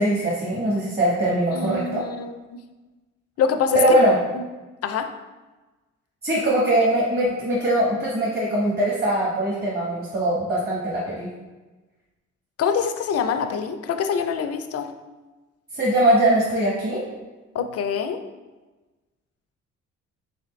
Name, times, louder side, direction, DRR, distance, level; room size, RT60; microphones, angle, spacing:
voice 1, 0.0-2.0 3.7-4.2 6.2-11.3 15.7-17.0, right 1 dB, 30° right, -5 dB, 1.1 m, -21 dB
voice 2, 1.5-2.6 3.4-3.8 4.3-4.4 4.8-5.1 12.6-14.9 17.5-18.2, left 6 dB, 55° left, 8 dB, 0.5 m, -25 dB
4.1 x 3.9 x 3.2 m, 1.2 s
cardioid pair, 90°, 30 cm